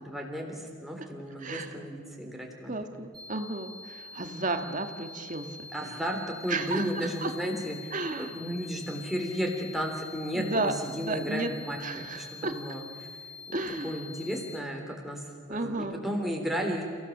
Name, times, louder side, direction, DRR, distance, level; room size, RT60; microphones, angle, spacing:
voice 1, 0.1-2.8 5.7-13.1 13.5-13.6 13.8-16.8, equal, ahead, 0 dB, 3.5 m, -34 dB
voice 2, 2.7-5.9 6.5-7.3 7.9-8.4 10.3-10.7 11.0-11.5 11.8-12.5 13.5-14.0 15.5-16.0, right 2 dB, 40° right, 6 dB, 1.6 m, -33 dB
sound 1, 3.1-14.6, left 4 dB, 20° right, 3.6 m, -46 dB
29.5 x 16.5 x 7.3 m, 2.2 s
head